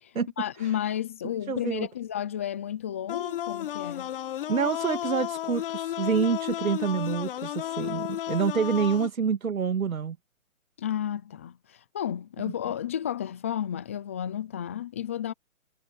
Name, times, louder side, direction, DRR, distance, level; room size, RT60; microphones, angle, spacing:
voice 1, 0.4-4.1 10.8-15.3, left 10 dB, 10° left, 0.5 m, -32 dB
voice 2, 1.5-1.9 4.5-10.2 12.4-12.5, right 6 dB, 80° right, 2.0 m, -27 dB
sound 1, 3.1-9.1, left 12 dB, 40° left, 2.4 m, -33 dB
hypercardioid pair, 145°, 42 cm